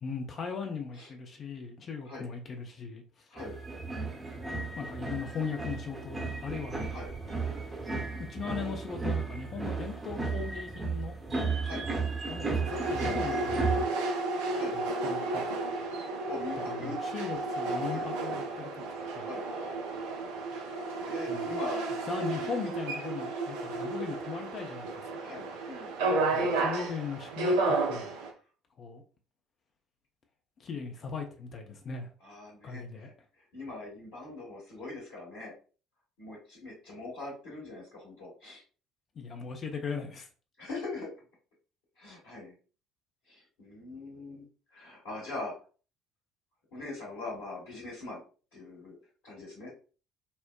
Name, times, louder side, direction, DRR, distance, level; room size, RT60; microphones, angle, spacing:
voice 1, 0.0-3.0 4.8-6.8 8.1-11.1 12.3-14.0 14.7-15.4 15.7-15.8 16.7-18.8 19.1-19.3 21.3-21.5 22.1-25.3 26.3-28.1 28.8-29.0 30.6-32.1 32.6-33.1 39.2-40.3, left 5 dB, 40° left, 3 dB, 0.6 m, -38 dB
sound 1, 3.4-13.8, right 4 dB, 25° right, 0.8 m, -34 dB
sound 2, 12.6-28.3, right 2 dB, 70° right, 0.5 m, -32 dB
voice 2, 16.3-17.0 17.9-18.1 19.2-19.4 21.0-21.8 22.3-22.5 25.2-25.9 32.2-35.5 36.2-38.6 40.6-41.1 42.0-42.5 43.3-44.4 44.7-45.5 46.7-48.2 48.5-49.0 49.2-49.7, left 2 dB, 65° left, -5 dB, 1.4 m, -42 dB
4.2 x 2.1 x 2.2 m, 0.38 s
figure-of-eight pair, 55°, 0 cm